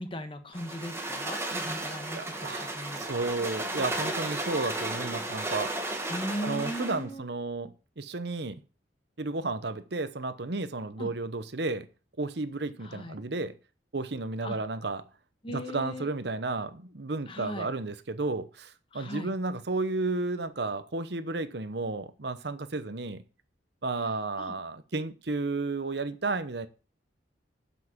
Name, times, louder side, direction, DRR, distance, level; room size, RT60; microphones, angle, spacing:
voice 1, 0.0-3.0 6.1-7.2 11.0-11.1 12.8-13.2 14.4-14.6 15.4-16.1 17.3-17.7 18.9-19.3 24.0-24.5, equal, 30° left, 1.4 m, -38 dB
sound 1, 0.5-7.0, right 2 dB, 15° right, 1.5 m, -34 dB
voice 2, 2.1-2.7 2.9-5.7 6.4-8.6 9.2-11.9 12.2-13.5 13.9-15.0 15.5-23.2 23.8-26.7, right 3 dB, 65° right, 0.9 m, -32 dB
8.0 x 7.4 x 7.3 m
head